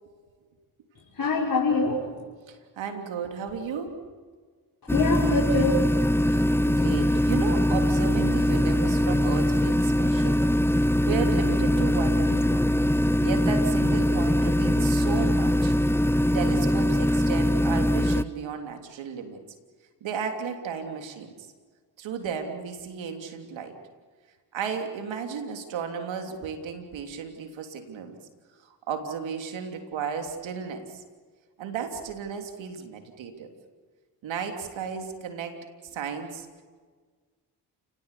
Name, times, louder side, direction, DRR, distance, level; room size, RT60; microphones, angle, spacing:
voice 1, 1.1-2.1 4.9-6.1, left 3 dB, 50° left, -5 dB, 6.0 m, -25 dB
voice 2, 2.5-4.0 6.3-10.4 10.8-12.7 13.2-15.7 16.3-19.4 20.0-21.3 22.0-23.8 24.5-28.2 28.6-31.0 31.6-33.5 34.2-36.5, right 6 dB, 85° right, 5 dB, 3.2 m, -34 dB
sound 1, 4.9-18.2, equal, 5° left, 0.8 m, -22 dB
29.5 x 19.0 x 8.5 m, 1.5 s
supercardioid pair, 45°, 45 cm